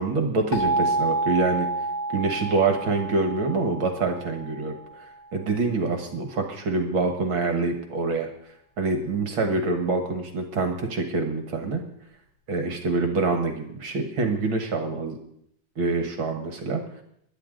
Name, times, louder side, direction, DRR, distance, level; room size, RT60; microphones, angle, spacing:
voice 1, 0.0-1.7 2.1-4.8 5.3-8.3 8.8-11.8 12.5-15.2 15.8-16.8, right 3 dB, 50° right, 5 dB, 1.9 m, -25 dB
sound 1, 0.5-5.2, right 2 dB, 50° left, 3.3 m, -29 dB
21.5 x 11.0 x 3.9 m, 0.71 s
omnidirectional pair, 3.4 m